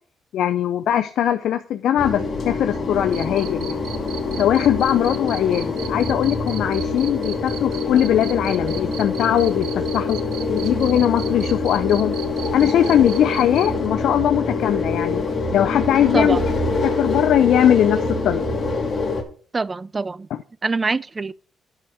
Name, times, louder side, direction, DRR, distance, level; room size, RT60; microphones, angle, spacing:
voice 1, 0.3-3.8 4.4-9.7 9.9-10.2 10.5-12.1 12.5-15.2 15.5-18.5, left 10 dB, 75° left, 0.6 m, -20 dB
sound 1, 2.0-19.2, left 3 dB, 45° left, 2.3 m, -25 dB
Cricket, 3.1-13.7, right 10 dB, 85° right, 0.9 m, -38 dB
voice 2, 19.5-20.3 20.6-21.3, right 3 dB, 25° right, 0.4 m, -24 dB
9.8 x 5.0 x 6.0 m
cardioid pair, 90°, 0 cm